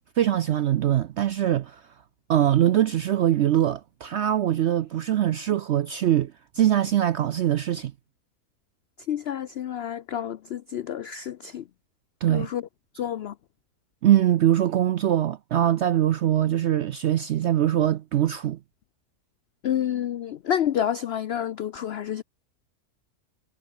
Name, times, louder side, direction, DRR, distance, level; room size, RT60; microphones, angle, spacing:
voice 1, 0.2-1.8 2.3-7.9 12.2-12.5 14.0-18.6, right 11 dB, 70° right, 0.6 m, -22 dB
voice 2, 9.1-11.6 12.3-12.6 12.9-13.3 19.6-22.2, left 10 dB, 75° left, 0.5 m, -29 dB
omnidirectional pair, 1.7 m